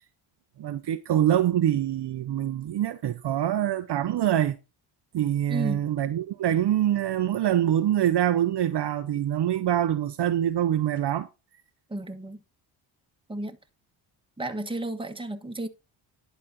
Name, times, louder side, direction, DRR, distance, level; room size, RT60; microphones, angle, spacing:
voice 1, 0.6-4.6 5.1-11.3, right 11 dB, 55° right, 0.8 m, -25 dB
voice 2, 5.5-5.8 11.9-12.4 13.3-13.6 14.4-15.7, right 2 dB, 10° right, 1.4 m, -32 dB
11.0 x 4.2 x 5.2 m
supercardioid pair, 60°, 50 cm